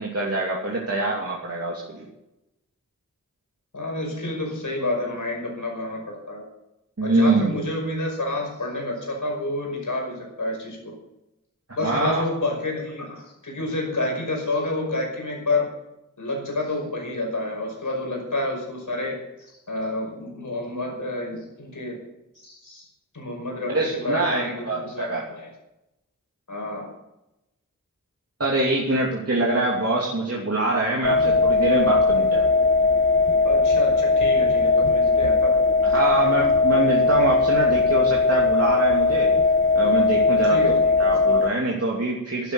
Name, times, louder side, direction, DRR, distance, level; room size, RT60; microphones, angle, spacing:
voice 1, 0.0-2.0 7.0-7.6 11.8-12.2 23.7-25.3 28.4-32.5 35.8-39.3 39.7-42.5, right 2 dB, 50° right, -3 dB, 2.8 m, -24 dB
voice 2, 3.7-6.4 7.0-10.9 11.7-15.7 16.2-22.0 22.4-22.9 23.1-25.5 26.5-26.9 33.4-35.6 40.4-40.9, left 2 dB, 75° left, 0 dB, 5.6 m, -29 dB
sound 1, 31.0-41.5, left 3 dB, 40° left, 0.9 m, -19 dB
11.5 x 11.0 x 6.7 m, 0.91 s
wide cardioid pair, 50°, 31 cm